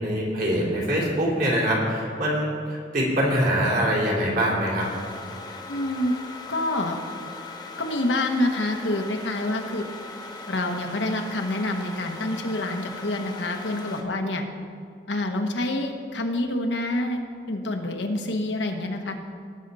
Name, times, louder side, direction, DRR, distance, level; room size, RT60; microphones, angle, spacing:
voice 1, 0.0-4.9, equal, 50° right, -3 dB, 3.0 m, -24 dB
sound 1, 4.8-14.0, left 3 dB, 25° left, 1.1 m, -39 dB
voice 2, 5.7-6.1 6.5-7.0 7.8-9.8 10.5-14.4 15.1-17.2 17.5-19.2, left 1 dB, 85° left, 4 dB, 1.1 m, -27 dB
18.0 x 6.6 x 4.1 m, 2.3 s
head